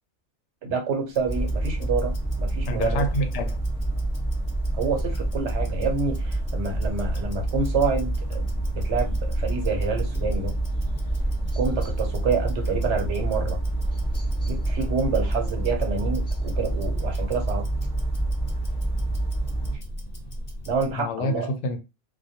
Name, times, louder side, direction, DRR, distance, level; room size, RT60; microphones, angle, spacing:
voice 1, 0.6-3.1 4.7-10.5 11.6-13.6 14.5-17.7 20.7-21.5, right 4 dB, 90° right, 1.0 m, -28 dB
Tick-tock, 1.1-21.0, equal, 40° left, 0.8 m, -38 dB
sound 1, 1.3-19.8, right 2 dB, 5° right, 0.9 m, -27 dB
voice 2, 2.6-3.6 21.0-21.8, left 1 dB, 90° left, 0.9 m, -27 dB
2.2 x 2.2 x 2.7 m
omnidirectional pair, 1.2 m